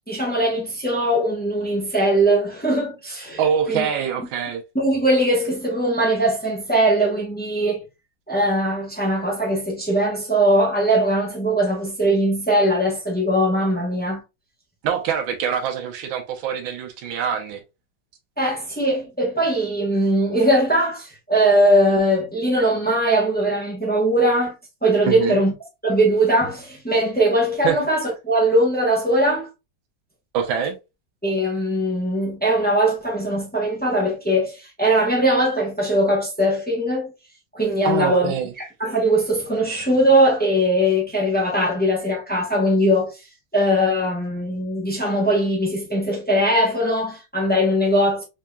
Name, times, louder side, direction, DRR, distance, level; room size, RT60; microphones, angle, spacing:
voice 1, 0.1-3.4 3.7-3.8 4.7-7.8 8.3-14.2 18.4-24.5 24.8-25.5 25.8-29.5 31.2-37.1 37.5-43.2 43.5-48.2, right 1 dB, 10° left, 0.4 m, -20 dB
voice 2, 3.4-4.6 14.8-17.6 25.0-25.4 27.6-27.8 30.3-30.8 37.8-38.5, right 8 dB, 80° right, 1.4 m, -24 dB
3.7 x 3.4 x 2.2 m
omnidirectional pair, 2.2 m